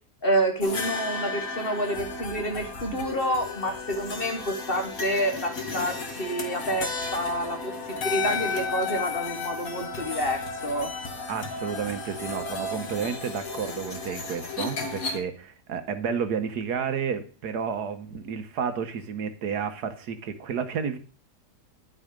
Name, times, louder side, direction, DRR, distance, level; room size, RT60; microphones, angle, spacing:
voice 1, 0.2-10.9 12.7-12.9, equal, 35° left, 5 dB, 1.4 m, -28 dB
sound 1, 0.6-15.2, left 4 dB, 55° left, 1.9 m, -33 dB
voice 2, 11.3-21.0, right 6 dB, 70° right, 9 dB, 1.5 m, -31 dB
11.0 x 6.2 x 5.1 m, 0.38 s
omnidirectional pair, 1.8 m